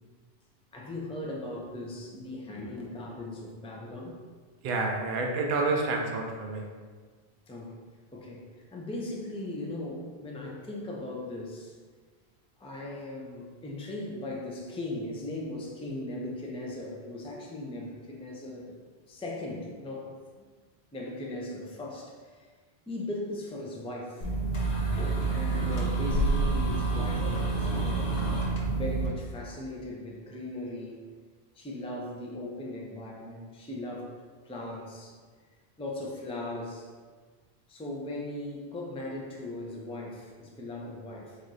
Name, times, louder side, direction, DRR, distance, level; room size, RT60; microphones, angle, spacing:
voice 1, 0.7-4.2 7.5-7.8 8.1-11.8 12.6-18.8 19.1-20.1 20.9-22.5 22.9-24.3 25.3-28.2 28.7-31.1 31.5-34.2 34.4-35.2 35.8-36.9 37.7-41.4, left 1 dB, 10° left, -2 dB, 0.4 m, -38 dB
voice 2, 4.6-6.7, right 3 dB, 60° right, 1 dB, 0.7 m, -29 dB
sound 1, 24.2-29.1, right 3 dB, 75° left, 1.2 m, -28 dB
4.1 x 2.6 x 4.7 m, 1.5 s
omnidirectional pair, 1.1 m